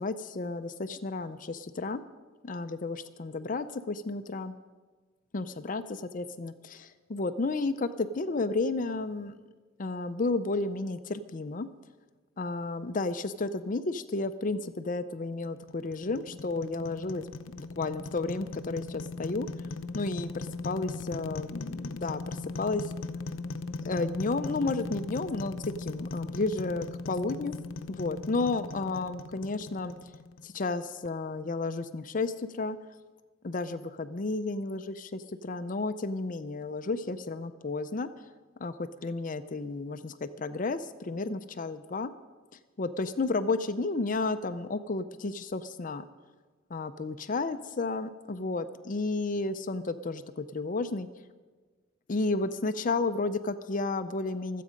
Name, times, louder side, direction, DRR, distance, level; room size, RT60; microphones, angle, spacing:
voice 1, 0.0-2.0 2.4-4.5 5.3-5.8 6.1-9.4 9.8-11.7 12.4-17.3 17.6-19.5 19.9-22.9 23.8-27.6 27.9-29.9 30.4-32.8 33.4-38.1 38.6-42.1 42.8-46.0 46.7-51.1 52.1-54.6, left 3 dB, 40° left, 11 dB, 0.5 m, -32 dB
sound 1, 15.4-30.6, left 3 dB, 85° left, 0.7 m, -39 dB
25.0 x 8.5 x 5.1 m, 1.4 s
head